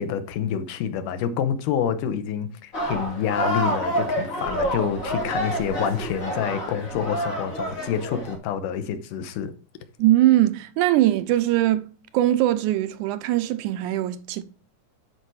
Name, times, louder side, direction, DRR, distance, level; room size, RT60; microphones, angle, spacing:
voice 1, 0.0-9.5, left 8 dB, 90° left, 2.5 m, -27 dB
sound 1, 2.7-8.3, right 1 dB, 25° left, 3.0 m, -28 dB
voice 2, 10.0-14.4, right 14 dB, 85° right, 2.1 m, -21 dB
10.5 x 4.6 x 4.7 m
omnidirectional pair, 3.6 m